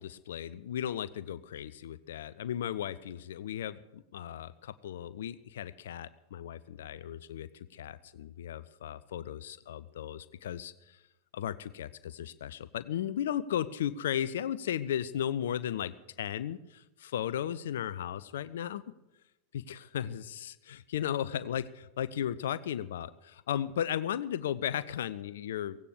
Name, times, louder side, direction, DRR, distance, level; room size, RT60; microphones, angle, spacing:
voice 1, 0.0-11.0 11.3-18.8 19.5-25.8, left 10 dB, 60° left, 16 dB, 0.6 m, -35 dB
17.0 x 16.5 x 4.9 m, 0.98 s
figure-of-eight pair, 90°, 0 cm